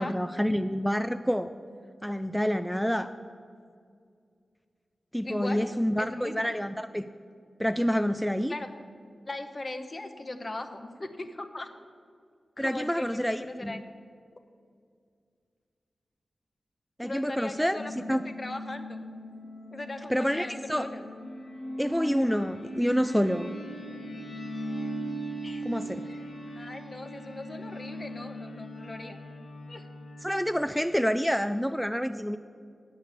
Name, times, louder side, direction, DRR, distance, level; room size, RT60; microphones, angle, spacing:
voice 1, 0.0-1.5 2.0-3.1 5.1-7.0 7.6-8.5 12.6-13.8 17.0-17.8 18.1-18.2 20.1-20.9 21.8-23.5 25.6-26.1 30.2-32.4, equal, ahead, 10 dB, 0.3 m, -28 dB
voice 2, 5.2-5.7 6.0-6.5 8.5-8.7 9.3-11.7 12.6-13.8 17.0-17.9 18.2-19.0 19.7-21.1 25.4-26.3 26.5-29.2 29.7-29.9, left 2 dB, 40° left, 6 dB, 0.8 m, -39 dB
sound 1, 17.8-30.2, equal, 90° left, 1.5 m, -39 dB
8.4 x 6.6 x 8.0 m, 2.2 s
cardioid pair, 65°, 0 cm